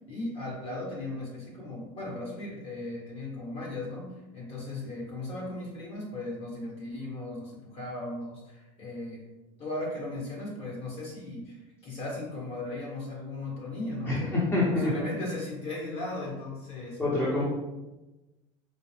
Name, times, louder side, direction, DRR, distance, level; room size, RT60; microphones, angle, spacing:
voice 1, 0.1-9.2 9.6-14.4 14.7-17.0, left 2 dB, 35° left, -3 dB, 1.3 m, -37 dB
voice 2, 14.1-14.9 17.0-17.4, left 2 dB, 15° left, -6 dB, 0.9 m, -26 dB
4.3 x 2.1 x 3.3 m, 1.0 s
supercardioid pair, 120°, 16 cm